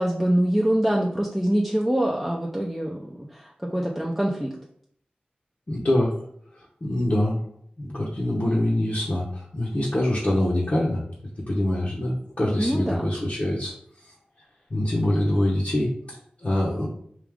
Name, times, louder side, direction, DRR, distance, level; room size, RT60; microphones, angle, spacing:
voice 1, 0.0-4.5 12.6-13.1, right 1 dB, 5° right, -2 dB, 0.5 m, -24 dB
voice 2, 5.7-6.2 6.5-7.4 7.8-11.0 11.5-13.7 14.7-16.9, left 1 dB, 45° left, -5 dB, 0.9 m, -24 dB
4.8 x 2.4 x 3.5 m, 0.63 s
wide cardioid pair, 75°, 3 cm